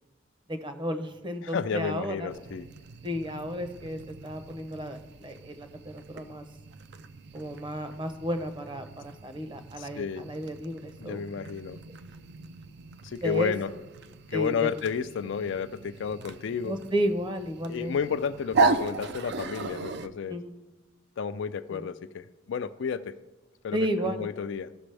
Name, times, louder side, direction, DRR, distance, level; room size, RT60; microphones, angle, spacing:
voice 1, 0.5-2.3 3.0-6.4 7.3-11.2 13.2-13.5 14.3-14.7 16.6-18.2 20.3-20.5 21.7-21.9 23.7-24.3, equal, 25° right, 8 dB, 0.7 m, -33 dB
voice 2, 1.4-2.7 9.8-10.3 11.0-11.8 13.0-13.7 14.3-16.8 17.7-20.4 21.2-23.2 23.6-24.7, left 6 dB, 65° left, 12 dB, 0.4 m, -32 dB
sound 1, 2.3-20.1, right 4 dB, 55° right, 0.4 m, -36 dB
15.0 x 6.0 x 3.3 m, 1.1 s
head